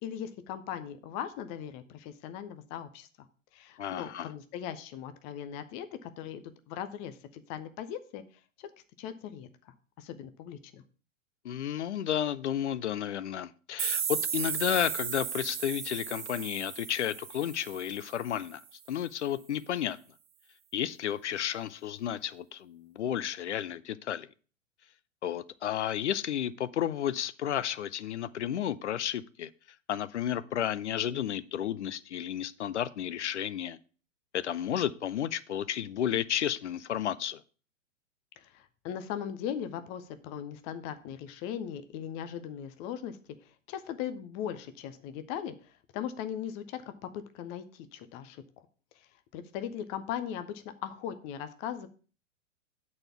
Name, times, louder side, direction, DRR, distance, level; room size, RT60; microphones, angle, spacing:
voice 1, 0.0-3.3 3.5-8.2 8.6-8.7 9.0-10.8 38.4-43.2 43.7-48.4 49.0-51.9, left 9 dB, 20° left, 0.4 m, -39 dB
voice 2, 3.8-4.3 11.4-18.6 18.9-20.0 20.7-24.3 25.2-29.5 29.9-33.8 34.3-37.4, left 10 dB, 65° left, 0.6 m, -32 dB
sound 1, 13.8-18.5, right 8 dB, 35° right, 1.5 m, -35 dB
8.8 x 4.3 x 6.9 m
figure-of-eight pair, 100°, 38 cm